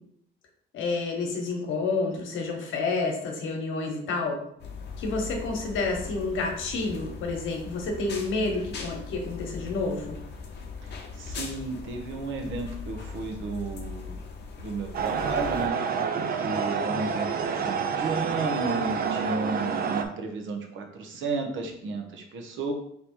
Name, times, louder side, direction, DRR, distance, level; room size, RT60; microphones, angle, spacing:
voice 1, 0.7-4.4 5.0-10.2, left 3 dB, 80° left, 1 dB, 1.1 m, -29 dB
sound 1, 4.6-15.7, left 5 dB, 60° left, 0.8 m, -39 dB
voice 2, 10.8-14.2 14.6-16.0 16.4-22.7, right 3 dB, 75° right, 3 dB, 0.9 m, -33 dB
sound 2, 14.9-20.1, right 6 dB, 50° right, 0.5 m, -28 dB
3.5 x 3.0 x 4.3 m, 0.71 s
cardioid pair, 90°, 20 cm